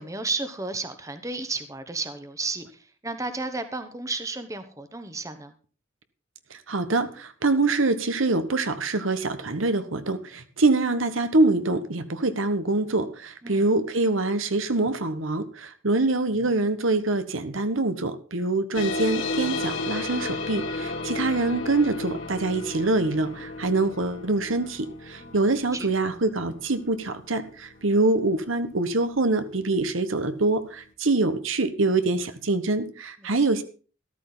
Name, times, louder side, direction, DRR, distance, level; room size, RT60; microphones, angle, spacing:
voice 1, 0.0-5.5 13.4-13.7 25.2-25.4 25.7-25.9 33.2-33.3, right 3 dB, 15° right, 9 dB, 1.1 m, -33 dB
voice 2, 6.7-33.6, right 2 dB, 80° right, 10 dB, 1.3 m, -25 dB
sound 1, 18.7-29.7, left 2 dB, 75° left, 2.0 m, -34 dB
13.5 x 13.0 x 4.0 m, 0.38 s
head